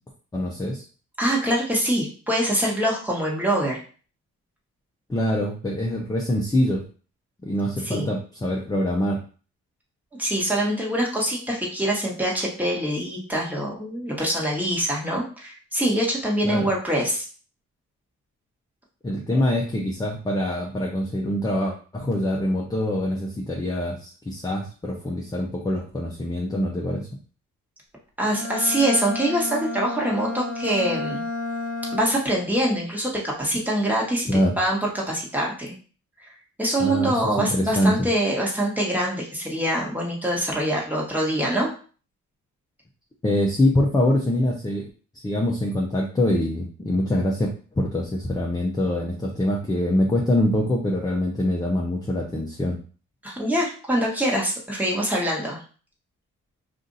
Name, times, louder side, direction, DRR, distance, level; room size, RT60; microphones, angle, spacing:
voice 1, 0.3-0.8 5.1-6.8 7.4-9.2 16.4-16.7 19.0-27.1 34.3-34.6 36.8-38.1 43.2-44.9 45.2-47.5 47.8-52.8, left 1 dB, 15° left, 0 dB, 0.6 m, -24 dB
voice 2, 1.2-3.8 7.8-8.1 10.2-17.2 19.3-19.4 28.2-31.2 31.9-34.3 34.6-35.7 36.6-41.7 53.2-55.6, right 1 dB, 5° right, -3 dB, 1.3 m, -24 dB
Bowed string instrument, 28.2-32.3, left 3 dB, 30° right, 1.3 m, -31 dB
2.6 x 2.5 x 3.9 m, 0.39 s
cardioid pair, 90°, 30 cm